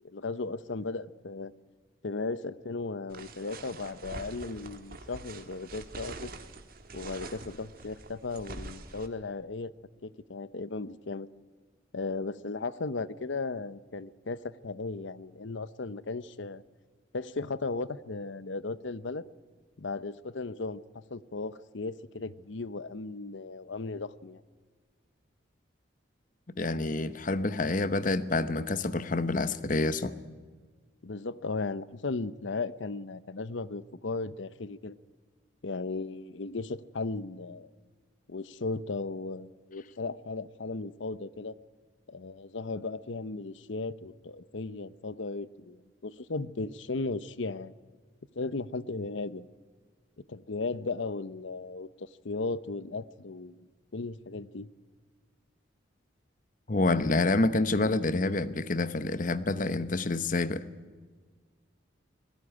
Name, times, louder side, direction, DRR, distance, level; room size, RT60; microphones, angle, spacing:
voice 1, 0.0-1.5 2.0-6.3 6.9-9.7 10.0-11.3 11.9-16.6 17.1-19.2 19.8-24.4 31.0-34.9 35.6-37.7 38.3-41.5 42.1-47.7 48.3-49.5 50.3-53.7 53.9-54.7, left 3 dB, 75° left, 0.7 m, -36 dB
sound 1, 3.1-9.1, right 3 dB, 50° right, 1.6 m, -45 dB
voice 2, 26.6-30.2 56.7-60.6, left 2 dB, 45° left, 0.9 m, -28 dB
19.5 x 17.0 x 9.9 m
head